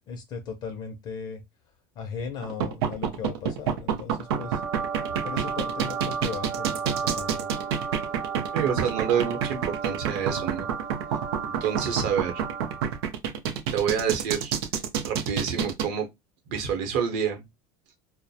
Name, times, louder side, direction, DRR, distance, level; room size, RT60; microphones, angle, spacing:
voice 1, 0.1-1.4 2.0-4.6 5.2-7.5, left 6 dB, 35° left, 0.4 m, -37 dB
sound 1, 2.4-15.8, right 8 dB, 90° right, 0.5 m, -28 dB
sound 2, 4.2-13.1, right 6 dB, 20° right, 0.5 m, -34 dB
voice 2, 8.5-10.7 11.6-12.4 13.7-14.5 15.0-16.1 16.5-17.4, right 7 dB, 60° right, 0.8 m, -27 dB
2.3 x 2.0 x 2.6 m
cardioid pair, 155°, 13 cm